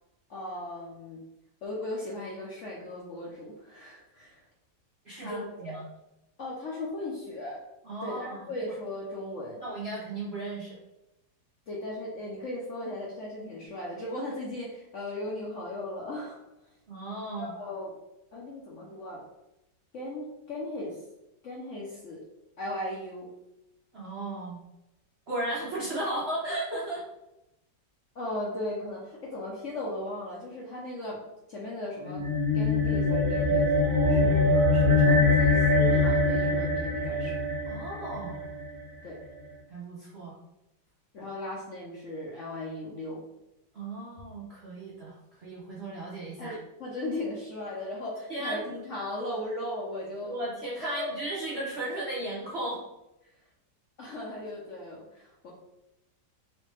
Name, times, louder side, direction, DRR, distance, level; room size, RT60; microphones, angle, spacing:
voice 1, 0.3-1.2 1.6-4.4 5.2-5.7 6.4-7.6 8.0-9.6 11.7-16.4 17.3-18.0 18.3-19.2 19.9-21.0 21.4-22.2 22.6-23.3 28.1-31.2 31.5-32.3 32.5-37.4 39.0-39.2 41.1-43.2 46.4-50.4 50.8-51.1 54.0-55.5, left 1 dB, 65° left, -4 dB, 0.8 m, -37 dB
voice 2, 5.0-5.8 7.8-8.7 9.6-10.8 16.9-17.5 23.9-24.6 25.3-27.0 37.7-38.4 39.7-40.4 43.7-46.6 48.3-48.8 50.2-52.8, right 1 dB, 55° right, -6 dB, 0.7 m, -35 dB
sound 1, 32.0-38.7, left 2 dB, 80° right, 1.4 m, -23 dB
3.3 x 3.3 x 3.1 m, 0.91 s
omnidirectional pair, 2.0 m